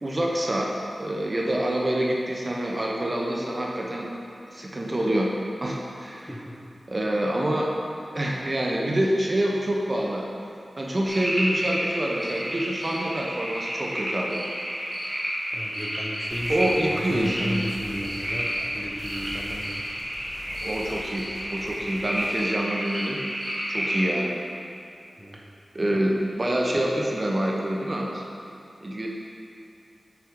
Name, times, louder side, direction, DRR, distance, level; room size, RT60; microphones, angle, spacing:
voice 1, 0.0-0.7 1.0-4.1 4.5-5.3 5.6-6.3 6.9-7.7 8.1-10.2 10.8-14.4 16.5-17.6 20.6-23.2 23.7-24.4 25.7-28.2 28.8-29.1, right 1 dB, 35° right, -2 dB, 0.9 m, -26 dB
voice 2, 6.3-6.7 15.5-19.8 25.2-25.4, equal, ahead, -2 dB, 1.0 m, -35 dB
sound 1, 11.1-24.0, equal, 20° right, 1.5 m, -31 dB
sound 2, 16.2-22.4, left 1 dB, 85° left, 1.9 m, -45 dB
8.4 x 4.8 x 4.7 m, 2.6 s
wide cardioid pair, 75°, 0 cm